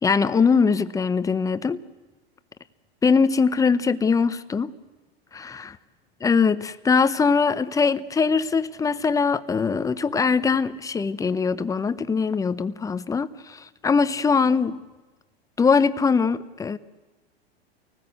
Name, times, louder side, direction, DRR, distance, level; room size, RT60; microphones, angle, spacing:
voice 1, 0.0-1.8 3.0-4.7 5.3-5.7 6.2-14.8 15.6-16.8, left 5 dB, 10° left, 0.7 m, -22 dB
29.5 x 19.5 x 8.0 m
hypercardioid pair, 120°, 31 cm